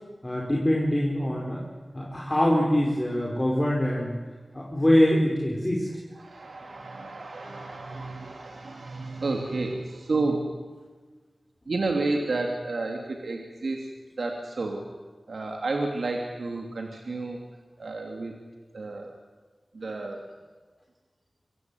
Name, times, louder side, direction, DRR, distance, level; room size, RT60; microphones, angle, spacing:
voice 1, 0.2-1.6 1.9-4.1 4.5-5.9, left 1 dB, 25° left, -3 dB, 4.9 m, -24 dB
voice 2, 6.1-10.4 11.7-13.9 14.2-14.8 15.3-17.4 17.8-18.4 18.7-19.1 19.7-20.2, right 3 dB, 80° right, 1 dB, 3.1 m, -31 dB
26.5 x 15.5 x 9.4 m, 1.4 s
wide cardioid pair, 60°, 0 cm